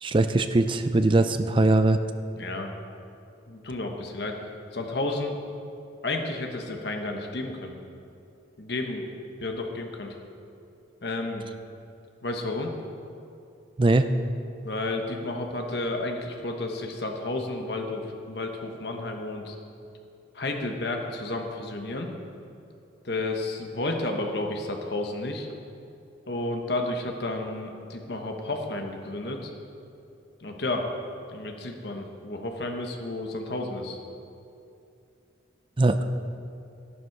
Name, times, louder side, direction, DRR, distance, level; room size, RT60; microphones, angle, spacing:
voice 1, 0.0-2.0 13.8-14.1 35.8-36.0, right 2 dB, 25° right, 9 dB, 0.4 m, -21 dB
voice 2, 2.3-2.7 3.5-4.4 4.7-5.4 6.0-7.7 8.6-9.1 9.4-10.1 11.0-11.4 12.2-12.7 14.6-19.5 20.3-22.1 23.0-25.5 26.3-29.5 30.4-30.9 31.3-34.0, left 2 dB, 55° left, 3 dB, 1.2 m, -31 dB
11.5 x 10.5 x 4.7 m, 2.6 s
head